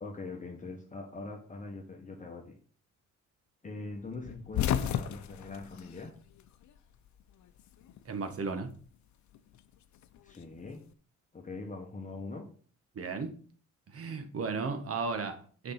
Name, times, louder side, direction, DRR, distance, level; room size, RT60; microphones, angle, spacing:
voice 1, 0.0-2.6 3.6-6.2 10.2-10.8 11.3-12.5, left 3 dB, 25° left, 1.3 m, -42 dB
sound 1, 4.2-6.8 7.1-8.1 9.3-10.8, left 10 dB, 70° left, 0.7 m, -34 dB
voice 2, 8.0-8.7 12.9-13.3 13.9-15.7, right 4 dB, 50° right, 1.5 m, -35 dB
6.7 x 5.2 x 5.7 m
cardioid pair, 90°, 30 cm